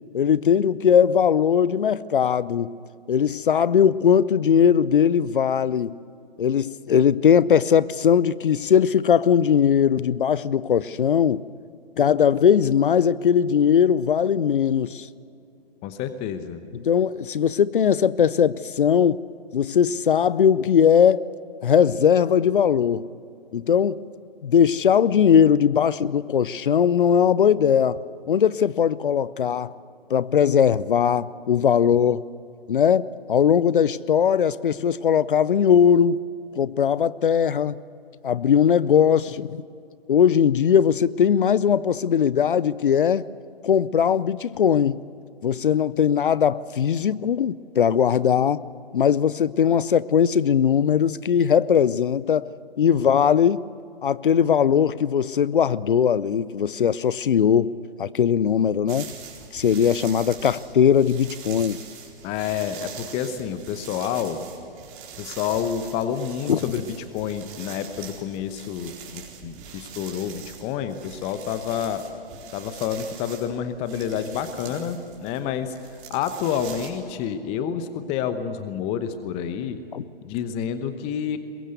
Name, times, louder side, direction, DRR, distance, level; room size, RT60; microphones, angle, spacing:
voice 1, 0.1-2.7 3.1-5.9 6.4-11.4 12.0-15.1 16.7-19.2 19.5-21.3 21.6-23.1 23.5-24.0 24.4-28.0 28.3-29.7 30.1-32.2 32.7-36.2 36.5-37.8 38.2-39.6 40.1-43.2 43.6-45.0 45.4-48.6 48.9-52.5 52.8-53.6 54.0-59.1 59.5-61.8 66.5-66.6 79.9-80.0, left 8 dB, 60° left, 0.6 m, -19 dB
voice 2, 15.8-16.6 62.2-64.4 65.2-72.0 72.5-75.7 76.1-79.8 80.2-81.4, left 8 dB, 20° left, 1.0 m, -29 dB
sound 1, 58.9-76.9, right 7 dB, 30° right, 4.4 m, -43 dB
22.5 x 22.0 x 8.1 m
figure-of-eight pair, 125°, 30 cm